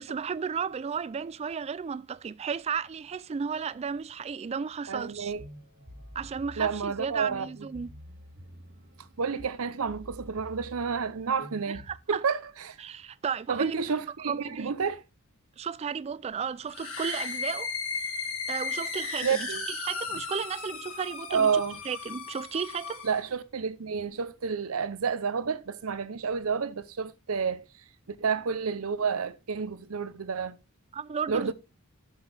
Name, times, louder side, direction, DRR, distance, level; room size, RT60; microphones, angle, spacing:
voice 1, 0.0-5.3 6.2-7.9 11.7-12.2 12.8-13.8 14.3-14.7 15.6-17.7 18.5-23.1 30.9-31.5, right 6 dB, 30° right, 0.3 m, -34 dB
voice 2, 4.9-5.4 6.6-7.5 9.2-11.8 12.1-12.4 12.6-12.8 13.5-15.0 19.2-19.6 21.3-21.8 23.0-27.6 28.2-30.6 31.3-31.5, right 6 dB, 75° right, 0.7 m, -30 dB
sound 1, 5.1-12.0, equal, 55° right, 2.4 m, -49 dB
sound 2, 16.7-23.2, left 4 dB, 70° left, 3.0 m, -35 dB
8.0 x 7.1 x 3.3 m
head